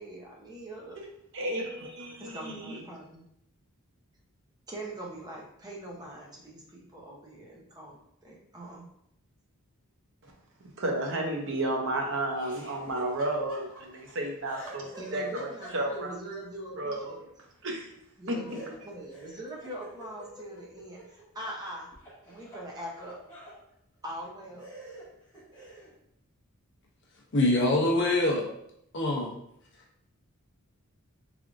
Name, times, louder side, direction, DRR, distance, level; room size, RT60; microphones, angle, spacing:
voice 1, 0.0-1.0 2.2-3.2 4.7-8.9 15.0-17.3 18.2-21.9 22.3-23.2 24.0-24.7, right 1 dB, 15° right, -2 dB, 0.7 m, -42 dB
voice 2, 1.0-2.8 10.2-10.3 10.8-16.1 16.8-17.2 17.6-17.9 18.3-18.6, right 1 dB, 55° right, 1 dB, 0.7 m, -32 dB
Laughter, 12.3-14.1 14.4-16.1 18.5-21.6 21.9-23.6 24.2-24.3 24.6-25.9, right 1 dB, 20° left, 1.3 m, -48 dB
voice 3, 27.3-28.5 28.9-29.3, left 2 dB, 50° left, -1 dB, 0.6 m, -24 dB
3.5 x 3.4 x 2.5 m, 0.76 s
head